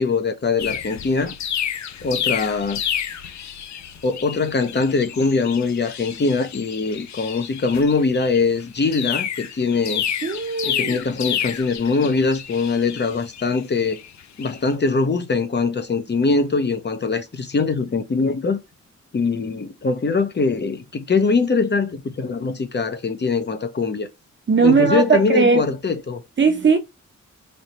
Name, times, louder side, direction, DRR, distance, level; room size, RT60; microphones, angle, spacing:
voice 1, 0.0-1.3 2.0-2.8 4.0-10.0 10.6-14.0 14.4-18.6 19.1-24.1 24.6-26.2, left 4 dB, 35° left, 0.8 m, -22 dB
sound 1, 0.6-14.6, left 9 dB, 70° left, 0.5 m, -30 dB
voice 2, 10.2-11.0 24.5-25.6 26.4-26.8, right 5 dB, 40° right, 1.0 m, -18 dB
3.3 x 2.8 x 4.1 m
wide cardioid pair, 110°, 29 cm